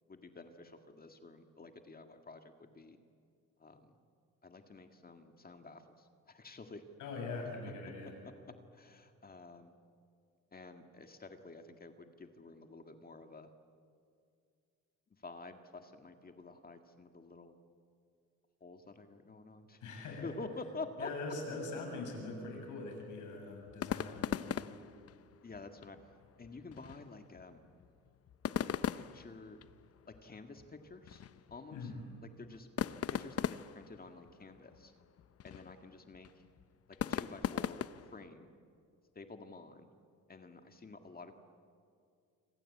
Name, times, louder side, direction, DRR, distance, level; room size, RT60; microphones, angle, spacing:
voice 1, 0.1-3.0 3.6-3.9 4.4-6.8 8.2-8.3 8.7-9.7 10.5-13.5 15.1-17.6 18.6-19.8 20.2-21.1 25.4-26.0 26.4-27.6 28.5-29.6 30.1-31.2 31.5-31.9 32.2-32.7 33.1-34.9 35.4-36.4 36.9-38.5 39.2-39.9 40.3-41.3, left 3 dB, 30° left, 6 dB, 1.9 m, -49 dB
voice 2, 7.0-8.1 19.8-20.3 21.0-24.8 31.7-32.0, left 3 dB, 80° left, 2 dB, 7.6 m, -42 dB
sound 1, 23.7-38.3, left 9 dB, 50° left, 0.8 m, -41 dB
27.5 x 25.5 x 8.5 m, 2.3 s
cardioid pair, 90°, 30 cm